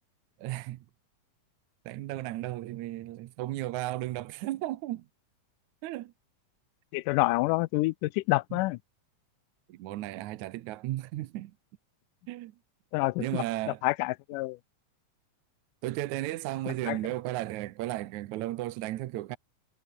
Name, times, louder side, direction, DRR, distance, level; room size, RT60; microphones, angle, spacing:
voice 1, 0.4-0.9 1.9-5.1 5.8-6.1 8.5-8.6 9.7-11.5 12.3-12.5 13.2-13.8 15.8-19.4, right 16 dB, 75° right, 2.1 m, -34 dB
voice 2, 6.9-8.8 12.9-14.6 16.7-17.0, left 21 dB, 90° left, 2.2 m, -28 dB
omnidirectional pair, 3.6 m